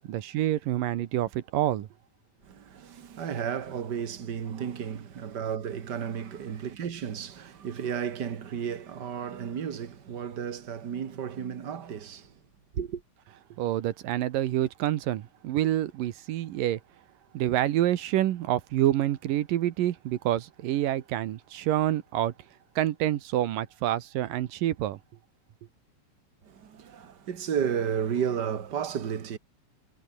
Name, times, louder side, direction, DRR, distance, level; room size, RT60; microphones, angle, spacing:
voice 1, 0.0-1.9 13.6-16.8 17.3-22.3 22.8-25.0, right 13 dB, 70° right, 2.6 m, -27 dB
voice 2, 2.4-12.3 12.7-13.0 26.4-29.4, right 8 dB, 55° right, 1.1 m, -33 dB
omnidirectional pair, 4.3 m